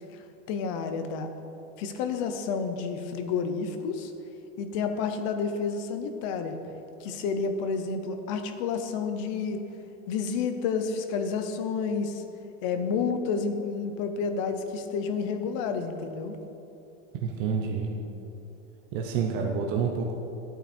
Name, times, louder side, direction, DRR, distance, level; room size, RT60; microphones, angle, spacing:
voice 1, 0.1-1.3 1.8-4.1 4.6-6.5 7.0-9.6 10.1-12.2 12.6-16.4, left 5 dB, 25° left, 7 dB, 0.5 m, -30 dB
voice 2, 17.2-17.9 18.9-20.1, right 5 dB, 25° right, 1 dB, 0.6 m, -28 dB
14.0 x 9.0 x 4.3 m, 2.9 s
supercardioid pair, 175°, 37 cm